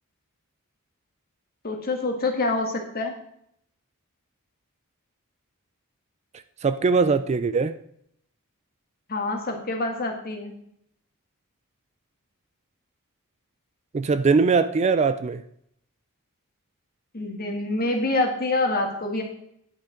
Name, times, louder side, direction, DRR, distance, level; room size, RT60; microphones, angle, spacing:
voice 1, 1.6-3.1 9.1-10.5 17.1-19.2, left 2 dB, 45° left, 3 dB, 1.7 m, -26 dB
voice 2, 6.6-7.7 13.9-15.4, right 4 dB, 30° right, 13 dB, 0.3 m, -21 dB
10.0 x 6.0 x 5.0 m, 0.71 s
head